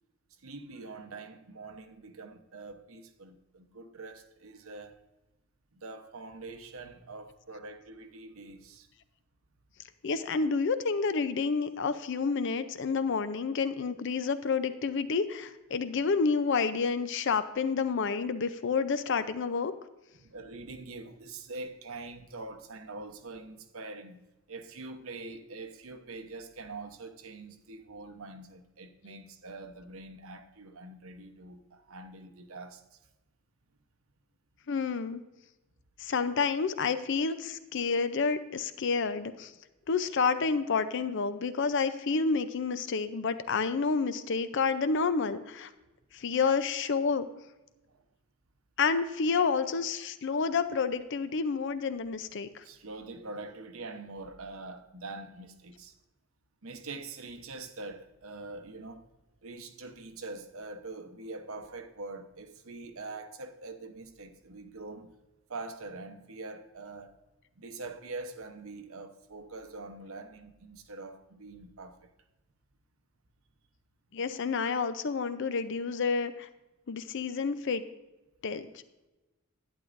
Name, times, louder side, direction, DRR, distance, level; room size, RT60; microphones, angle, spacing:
voice 1, 0.4-5.0 5.7-8.9 20.1-24.2 24.5-33.0 47.9-48.0 52.6-55.9 56.6-59.0 59.4-65.1 65.5-67.1 67.6-72.1, right 3 dB, 75° right, 0.9 m, -44 dB
voice 2, 10.0-19.7 34.7-35.2 36.0-39.5 39.9-45.7 46.1-47.3 48.8-52.6 74.1-76.5 76.9-77.8 78.4-78.7, left 5 dB, 60° left, 0.5 m, -29 dB
11.5 x 9.5 x 2.5 m
head